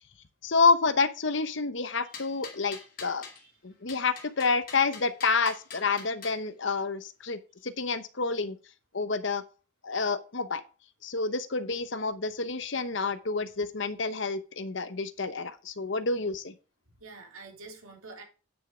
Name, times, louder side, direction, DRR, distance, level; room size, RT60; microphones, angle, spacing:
voice 1, 0.4-3.2 3.6-8.6 8.9-9.4 9.8-10.6 11.0-16.5, left 4 dB, 60° left, 12 dB, 1.0 m, -28 dB
sound 1, 2.1-3.4 3.9-6.4, left 5 dB, 40° left, 2.8 m, -44 dB
voice 2, 17.0-18.2, right 3 dB, 90° right, 0 dB, 3.3 m, -47 dB
9.3 x 6.5 x 5.0 m, 0.33 s
head